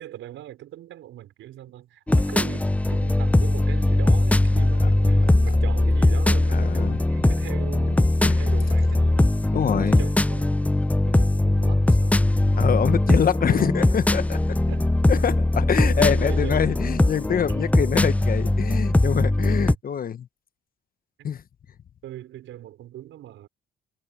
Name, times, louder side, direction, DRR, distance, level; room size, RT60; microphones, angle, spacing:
voice 1, 0.0-9.3 9.8-10.6 11.1-12.2 13.0-13.7 14.7-15.0 15.8-16.8 17.5-17.7 21.2-21.3 22.0-23.5, right 13 dB, 85° right, 5.5 m, -40 dB
sound 1, 2.1-19.7, left 2 dB, 5° left, 0.6 m, -20 dB
voice 2, 6.5-7.0 8.2-8.4 9.5-10.0 12.5-14.4 15.1-20.3 21.2-21.4, left 8 dB, 45° left, 1.0 m, -25 dB
cardioid pair, 90°, 20 cm